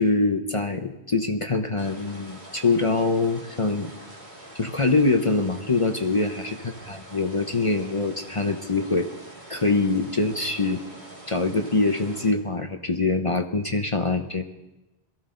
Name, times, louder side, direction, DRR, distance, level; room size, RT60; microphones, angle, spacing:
voice 1, 0.0-3.9 4.5-9.1 9.5-10.8 11.3-14.4, left 3 dB, 35° left, 6 dB, 0.8 m, -24 dB
sound 1, 1.8-12.3, right 1 dB, 45° right, 2.4 m, -45 dB
22.5 x 15.0 x 3.8 m, 0.99 s
omnidirectional pair, 1.1 m